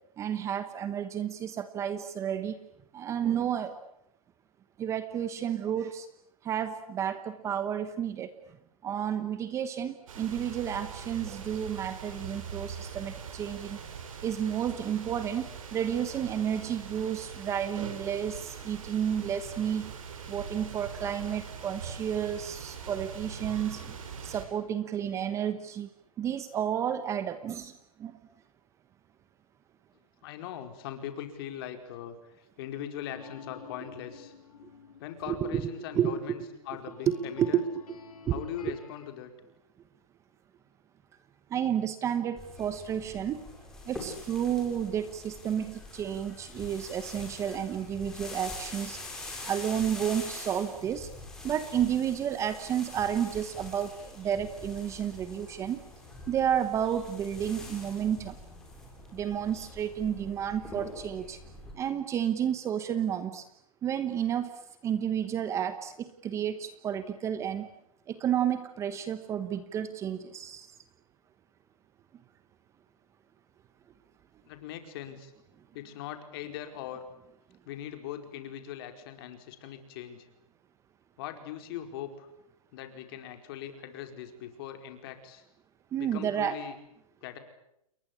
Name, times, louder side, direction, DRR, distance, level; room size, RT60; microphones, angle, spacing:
voice 1, 0.2-2.6 2.9-3.8 4.8-6.1 6.4-8.3 8.8-13.8 14.2-19.9 20.3-24.0 24.2-25.9 26.2-28.2 35.3-36.3 37.1-37.6 38.2-38.8 41.5-43.4 43.8-49.0 49.4-51.1 51.4-55.8 56.3-58.4 59.1-61.4 61.7-63.5 63.8-64.5 64.8-67.7 68.1-70.7 85.9-86.6, right 9 dB, 15° right, 11 dB, 1.1 m, -31 dB
sound 1, 10.1-24.5, right 6 dB, 65° right, 7.4 m, -42 dB
voice 2, 30.2-34.3 35.0-36.4 36.6-37.6 38.3-39.3 74.5-75.3 75.7-77.0 77.7-80.3 81.2-82.3 82.7-85.4 86.0-86.7 87.2-87.4, left 10 dB, 40° left, 6 dB, 4.8 m, -40 dB
sound 2, 33.1-39.1, left 6 dB, 80° left, 5.8 m, -51 dB
sound 3, 42.4-61.7, left 2 dB, 5° left, 6.8 m, -45 dB
29.5 x 23.0 x 8.6 m, 0.80 s
hypercardioid pair, 155°, 19 cm